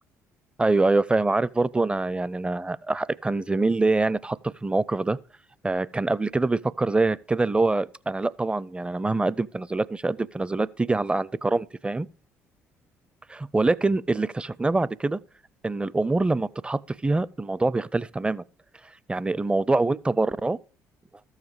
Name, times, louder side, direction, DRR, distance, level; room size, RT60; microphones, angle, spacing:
voice 1, 0.6-5.2 5.6-12.1 13.3-15.2 15.6-18.4 19.1-20.6, right 3 dB, 15° right, 0.5 m, -25 dB
13.5 x 7.3 x 4.8 m
hypercardioid pair, 55°, 7 cm